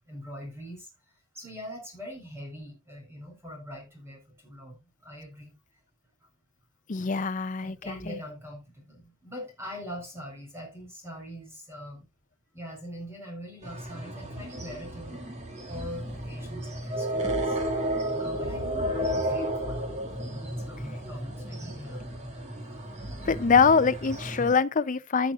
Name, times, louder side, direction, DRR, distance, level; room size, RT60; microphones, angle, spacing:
voice 1, 0.0-0.9 1.3-5.5 7.6-12.1 12.5-15.2 15.7-17.6 18.2-19.9 20.3-22.4, equal, 10° right, 4.5 m, -42 dB
voice 2, 6.9-8.2 23.2-25.3, left 5 dB, 35° left, 0.5 m, -24 dB
sound 1, 13.6-24.5, right 1 dB, 35° right, 2.2 m, -33 dB
17.0 x 6.3 x 2.5 m
head